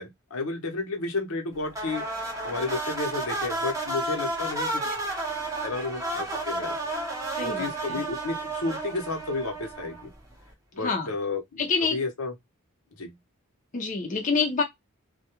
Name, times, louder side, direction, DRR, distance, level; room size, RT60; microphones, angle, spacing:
voice 1, 0.0-2.0 2.4-4.9 5.6-6.7 7.4-10.1 10.7-11.6 11.9-12.3 13.0-13.2, left 3 dB, 80° left, 0.8 m, -32 dB
sound 1, 1.7-10.2, right 2 dB, 15° right, 0.7 m, -32 dB
voice 2, 7.3-8.0 10.8-11.1 11.6-12.0 13.7-14.6, left 4 dB, 35° left, 0.5 m, -27 dB
2.3 x 2.1 x 2.8 m
head